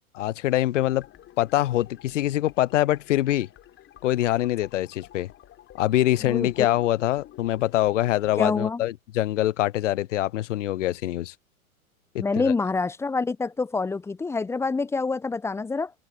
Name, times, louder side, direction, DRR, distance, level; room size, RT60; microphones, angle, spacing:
voice 1, 0.1-1.1 1.4-3.5 4.0-5.3 5.7-11.3 12.1-12.5, left 14 dB, 60° left, 0.6 m, -24 dB
sound 1, 0.7-8.5, left 12 dB, 25° left, 6.2 m, -50 dB
voice 2, 6.2-6.7 8.4-8.8 12.2-15.9, left 4 dB, 5° left, 0.8 m, -27 dB
open air
figure-of-eight pair, 100°, 43 cm